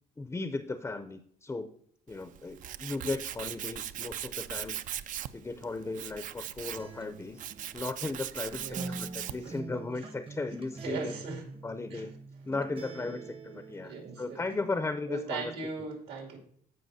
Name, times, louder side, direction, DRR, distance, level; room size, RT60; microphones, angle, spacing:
voice 1, 0.2-1.7 2.1-4.8 5.3-7.4 7.7-11.1 11.6-12.1 12.4-15.5, left 3 dB, 15° left, 9 dB, 0.5 m, -36 dB
Tools, 2.1-9.6, right 11 dB, 50° right, 0.4 m, -40 dB
Acoustic guitar, 6.8-14.8, right 3 dB, 35° right, 0.8 m, -45 dB
voice 2, 8.6-9.7 10.8-11.4 11.9-12.1 13.8-14.4 15.1-16.4, right 4 dB, 80° right, 1 dB, 2.5 m, -39 dB
15.5 x 5.3 x 2.7 m, 0.63 s
cardioid pair, 110°, 17 cm